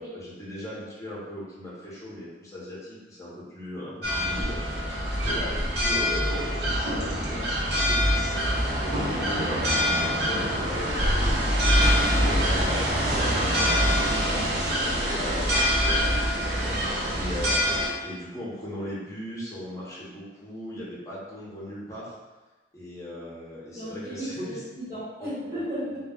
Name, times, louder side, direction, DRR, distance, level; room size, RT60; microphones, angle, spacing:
voice 1, 0.0-4.6 5.2-8.6 9.1-16.0 17.1-17.7 18.0-22.1 22.7-24.6 25.5-25.6, equal, 20° left, -8 dB, 0.8 m, -38 dB
sound 1, 4.0-17.9, equal, 70° right, 0.7 m, -24 dB
voice 2, 15.3-15.6 16.5-17.1 23.7-26.0, equal, 20° right, -13 dB, 1.1 m, -36 dB
2.2 x 2.2 x 3.6 m, 1.2 s
head